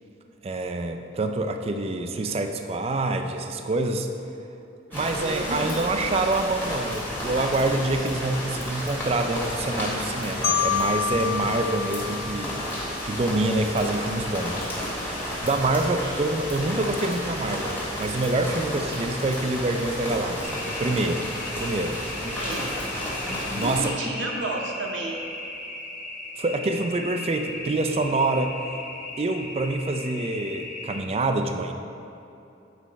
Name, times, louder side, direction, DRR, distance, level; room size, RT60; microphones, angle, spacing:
voice 1, 0.4-4.1 4.9-12.6 13.0-14.7 15.4-22.0 23.6-23.9 26.4-28.6 29.2-31.7, right 2 dB, 30° right, 6 dB, 0.3 m, -26 dB
sound 1, 4.9-23.9, left 1 dB, 10° left, 1.4 m, -32 dB
voice 2, 4.9-5.6 16.0-16.2 22.2-22.8 23.6-25.2, right 2 dB, 70° right, -1 dB, 0.8 m, -33 dB
Marimba xylophone, 10.4-13.3, left 8 dB, 75° left, 0.5 m, -28 dB
sound 2, 20.4-31.0, left 2 dB, 40° left, 0.7 m, -37 dB
8.3 x 4.3 x 5.1 m, 2.9 s
head